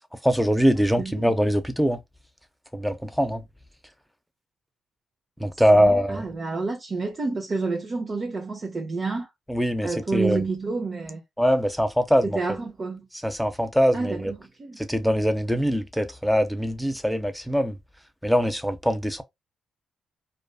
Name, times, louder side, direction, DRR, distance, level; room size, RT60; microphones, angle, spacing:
voice 1, 0.2-2.0 2.7-3.4 5.4-6.2 9.5-10.4 11.4-12.4 13.2-14.3 14.8-17.8 18.2-19.2, equal, ahead, 0.5 m, -22 dB
voice 2, 1.0-1.3 5.8-9.3 9.8-11.2 12.2-13.0 13.9-14.8, right 3 dB, 45° right, 0.6 m, -29 dB
2.5 x 2.3 x 2.2 m
supercardioid pair, 50°, 0 cm